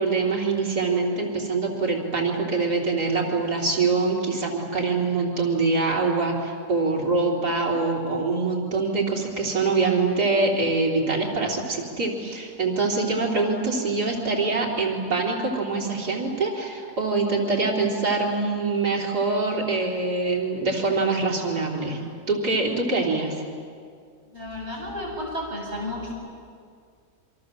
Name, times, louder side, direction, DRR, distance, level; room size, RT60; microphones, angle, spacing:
voice 1, 0.0-22.0 22.3-23.4, right 3 dB, 90° right, -2 dB, 4.2 m, -24 dB
voice 2, 24.3-26.1, left 1 dB, 45° right, -4 dB, 8.2 m, -32 dB
27.5 x 24.0 x 7.6 m, 2.2 s
omnidirectional pair, 1.7 m